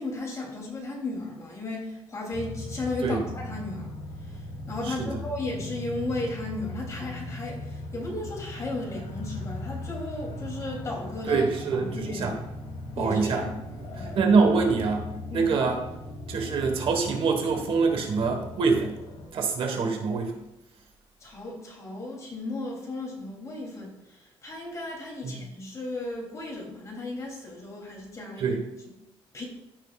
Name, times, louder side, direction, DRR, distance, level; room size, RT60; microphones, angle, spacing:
voice 1, 0.0-3.9 4.3-12.3 12.9-14.2 15.3-15.5 21.2-28.6 29.3-29.4, left 2 dB, 30° left, -2 dB, 3.0 m, -35 dB
sound 1, 2.3-19.3, left 1 dB, 70° left, 1.7 m, -38 dB
voice 2, 11.3-12.3 13.0-13.4 14.0-15.1 15.3-15.8 16.3-18.9 19.3-20.3 25.2-25.3 28.4-28.6, right 4 dB, 60° right, 4 dB, 1.4 m, -25 dB
15.0 x 6.3 x 2.4 m, 0.91 s
cardioid pair, 130°, 10 cm